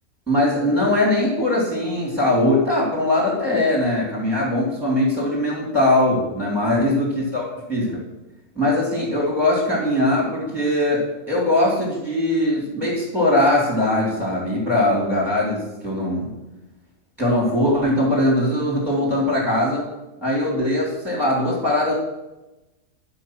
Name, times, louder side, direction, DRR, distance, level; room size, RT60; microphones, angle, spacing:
voice 1, 0.3-7.1 7.3-8.0 8.5-16.3 17.2-19.8 20.2-21.9, left 1 dB, ahead, -5 dB, 3.2 m, -21 dB
11.0 x 5.7 x 6.1 m, 1.0 s
omnidirectional pair, 1.4 m